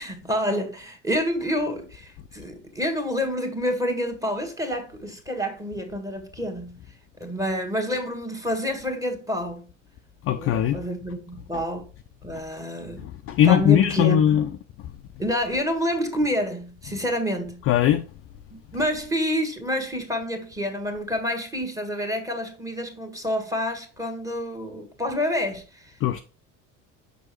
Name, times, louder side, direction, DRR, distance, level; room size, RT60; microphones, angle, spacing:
voice 1, 0.0-6.8 7.2-9.7 10.3-11.9 12.2-13.1 13.4-14.4 15.2-17.6 18.5-26.0, equal, 10° right, 1.3 m, -28 dB
voice 2, 10.2-10.8 13.0-14.5 17.7-18.0 26.0-26.2, left 11 dB, 35° left, 0.4 m, -19 dB
6.2 x 5.2 x 3.0 m
figure-of-eight pair, 60°, 40 cm